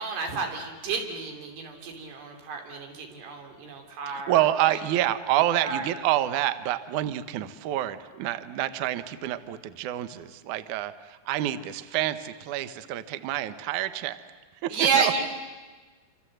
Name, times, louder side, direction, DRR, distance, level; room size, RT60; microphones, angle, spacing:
voice 1, 0.0-4.4 5.6-5.9 14.7-15.3, right 5 dB, 90° right, 4 dB, 5.3 m, -30 dB
voice 2, 4.1-14.2 14.6-15.1, right 13 dB, 70° right, 12 dB, 2.0 m, -28 dB
27.5 x 26.0 x 7.9 m, 1.3 s
omnidirectional pair, 4.6 m